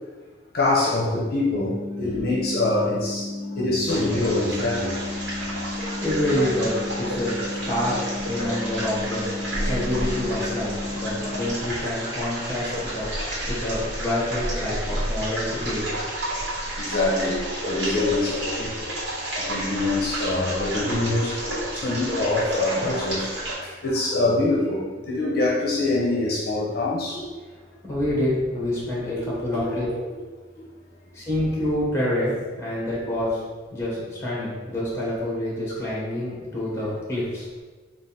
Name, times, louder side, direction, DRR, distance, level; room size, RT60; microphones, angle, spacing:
voice 1, 0.5-3.3 3.6-4.9 16.8-18.9 19.4-21.3 21.7-27.2 29.2-29.6, left 2 dB, 60° left, -4 dB, 0.7 m, -24 dB
sound 1, 1.5-11.5, left 2 dB, 35° right, 1.4 m, -33 dB
sound 2, 3.9-23.5, right 1 dB, 75° right, 1.2 m, -31 dB
voice 2, 6.0-9.3 9.6-13.1 13.5-15.9 27.8-29.9 31.1-33.4 33.7-37.5, left 1 dB, 15° left, -6 dB, 1.3 m, -27 dB
3.7 x 2.4 x 4.1 m, 1.4 s
head